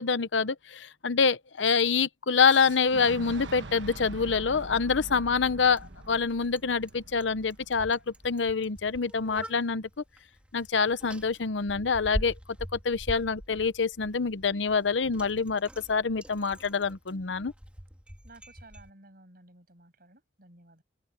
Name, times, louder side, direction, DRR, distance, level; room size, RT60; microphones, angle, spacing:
voice 1, 0.0-8.0 8.2-9.9 10.5-12.3 12.7-17.5, left 5 dB, 75° left, 0.8 m, -26 dB
Boom, 2.5-8.3, right 2 dB, 70° right, 1.4 m, -44 dB
Bicycle, 2.6-18.9, equal, 5° right, 3.0 m, -44 dB
voice 2, 18.2-20.8, right 2 dB, 55° right, 7.4 m, -55 dB
open air
head